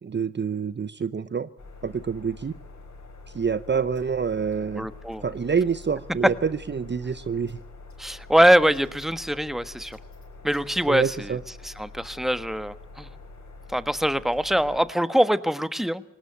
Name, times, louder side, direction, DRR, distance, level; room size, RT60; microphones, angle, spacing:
voice 1, 0.0-1.5 1.8-2.5 3.3-4.9 5.2-7.6 10.9-11.4, right 6 dB, 35° right, 14 dB, 0.9 m, -27 dB
sound 1, 1.6-14.8, left 3 dB, 60° left, 6.6 m, -45 dB
voice 2, 4.8-5.2 8.0-10.0 10.4-11.4 11.6-13.1 13.7-16.0, equal, ahead, 13 dB, 1.4 m, -23 dB
19.5 x 18.5 x 8.2 m, 0.83 s
supercardioid pair, 40°, 32 cm